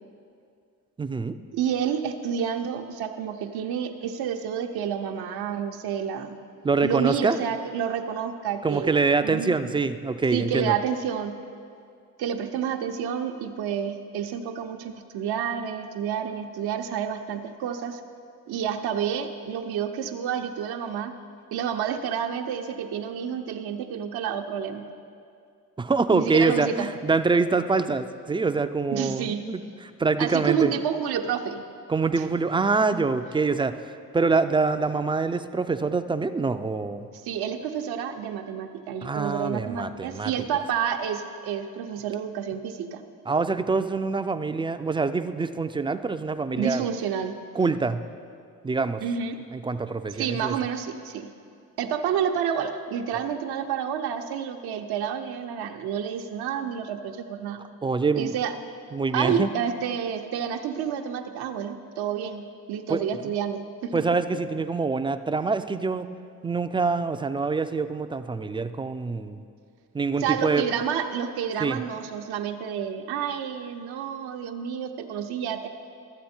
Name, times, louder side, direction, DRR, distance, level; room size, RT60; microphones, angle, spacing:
voice 1, 1.0-1.3 6.6-7.4 8.6-10.7 25.8-29.6 30.0-30.7 31.9-33.7 34.1-37.1 39.0-40.3 43.3-46.8 47.6-48.0 48.6-49.0 49.5-50.6 57.8-58.3 58.9-59.5 62.9-63.0 63.9-66.1 66.4-69.4 69.9-70.6 71.6-71.8, right 4 dB, 15° right, 10 dB, 0.3 m, -25 dB
voice 2, 1.5-6.3 6.8-9.6 10.3-11.4 12.2-18.0 18.5-21.1 21.5-24.8 26.1-26.9 28.9-29.5 30.2-31.6 32.2-32.3 37.1-43.0 46.6-47.3 49.0-49.4 50.1-51.3 51.8-57.6 58.2-58.5 59.1-64.0 70.2-75.7, right 8 dB, 80° right, 5 dB, 0.8 m, -29 dB
13.0 x 7.6 x 4.3 m, 2.3 s
cardioid pair, 85°, 37 cm